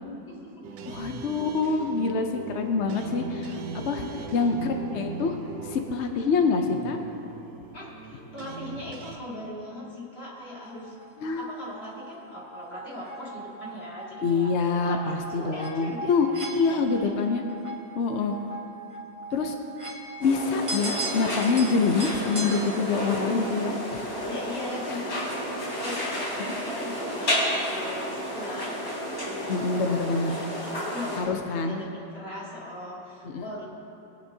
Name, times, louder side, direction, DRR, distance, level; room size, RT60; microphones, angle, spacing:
voice 1, 0.3-0.8 4.0-4.5 7.7-10.9 11.4-16.1 16.7-17.1 18.2-18.3 24.3-28.8 29.2-33.7, left 1 dB, 35° left, -6 dB, 2.4 m, -40 dB
sound 1, 0.6-9.2, right 5 dB, 70° right, 1.2 m, -40 dB
voice 2, 0.9-4.0 4.3-5.4 5.6-7.0 11.2-11.5 14.2-17.4 18.0-18.3 19.3-19.6 20.2-24.3 24.9-25.0 26.4-26.5 29.5-30.4 31.2-31.8 33.2-33.4, left 4 dB, 70° left, 4 dB, 0.6 m, -26 dB
sound 2, 10.8-22.6, right 3 dB, 35° right, 0.5 m, -39 dB
sound 3, 20.2-31.2, equal, 50° left, 3.6 m, -31 dB
20.5 x 9.7 x 2.7 m, 2.9 s
omnidirectional pair, 2.0 m